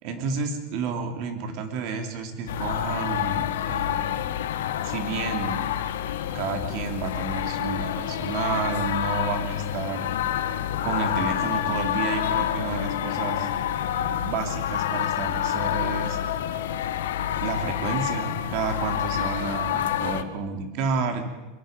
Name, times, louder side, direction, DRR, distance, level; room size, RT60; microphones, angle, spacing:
voice 1, 0.0-4.1 4.8-5.7 6.3-10.1 10.8-13.5 14.0-16.2 17.4-21.3, right 5 dB, 45° right, 5 dB, 3.2 m, -30 dB
sound 1, 2.3-12.8 13.3-17.6, left 3 dB, 10° left, 4.0 m, -48 dB
sound 2, 2.5-20.2, left 11 dB, 90° left, 1.3 m, -28 dB
23.5 x 22.5 x 5.3 m, 1.1 s
supercardioid pair, 160°, 0 cm